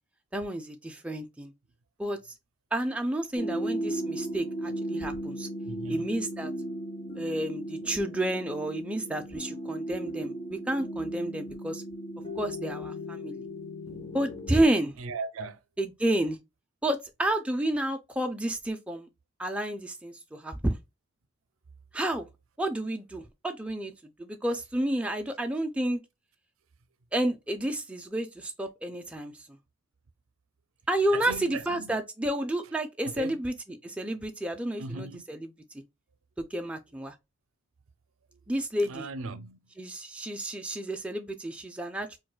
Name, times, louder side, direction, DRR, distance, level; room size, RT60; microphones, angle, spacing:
voice 1, 0.3-1.5 2.0-2.2 2.7-5.5 5.9-6.5 7.2-11.8 12.4-13.4 14.1-14.9 15.8-16.4 16.8-19.1 19.4-20.8 21.9-22.2 22.6-23.9 24.2-26.0 27.1-29.3 30.9-35.5 36.5-37.1 38.5-39.1 39.8-42.2, right 1 dB, 5° right, 0.3 m, -30 dB
sound 1, 3.4-14.6, equal, 25° left, 0.7 m, -36 dB
voice 2, 5.6-6.1 15.0-15.6 31.1-32.0 33.0-33.4 34.8-35.2 38.8-39.6, right 3 dB, 80° right, 0.5 m, -38 dB
4.5 x 2.2 x 2.3 m
head